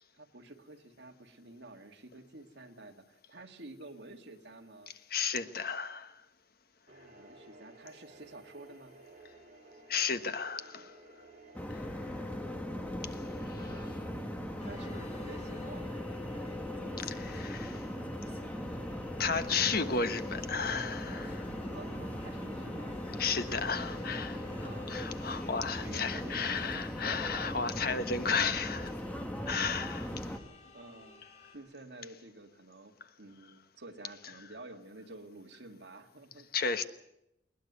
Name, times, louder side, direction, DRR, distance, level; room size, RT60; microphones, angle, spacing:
voice 1, 0.1-4.9 6.9-9.0 13.5-14.2 14.6-16.6 16.8-17.1 21.6-23.0 24.6-25.1 25.8-27.2 30.1-32.9 33.2-36.5, right 2 dB, 70° right, 2.1 m, -51 dB
voice 2, 5.1-6.2 9.9-11.0 11.7-12.2 13.0-13.7 17.2-17.9 19.2-21.5 23.2-29.0 29.5-30.1 36.5-36.8, left 5 dB, 55° left, 1.4 m, -34 dB
sound 1, 6.9-25.0, right 1 dB, 40° right, 5.6 m, -55 dB
sound 2, 11.5-30.4, left 1 dB, 10° left, 1.6 m, -39 dB
sound 3, 14.6-31.6, left 4 dB, 40° left, 3.5 m, -57 dB
21.0 x 20.0 x 8.2 m
head